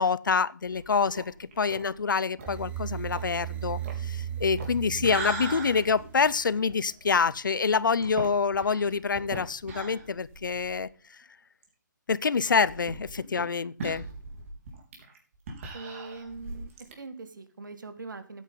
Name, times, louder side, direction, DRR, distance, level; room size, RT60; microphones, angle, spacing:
voice 1, 0.0-10.9 12.1-14.0, left 5 dB, 80° left, 0.6 m, -26 dB
sound 1, 0.6-10.9 11.2-11.3 11.6-11.7 12.4-16.9, right 3 dB, 40° right, 3.7 m, -41 dB
sound 2, 2.5-6.5, right 10 dB, 10° right, 0.9 m, -36 dB
voice 2, 15.7-18.4, right 3 dB, 75° right, 2.1 m, -42 dB
13.5 x 9.2 x 3.8 m
hypercardioid pair, 150°, 11 cm